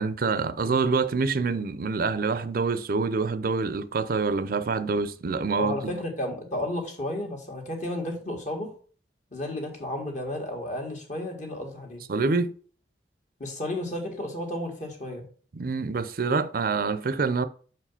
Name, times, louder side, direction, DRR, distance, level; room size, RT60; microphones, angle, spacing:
voice 1, 0.0-5.9 12.1-12.5 15.6-17.5, right 4 dB, 55° right, 0.5 m, -26 dB
voice 2, 5.6-8.7 9.3-12.0 13.4-15.2, left 1 dB, 45° left, 1.9 m, -32 dB
5.9 x 4.9 x 5.6 m
head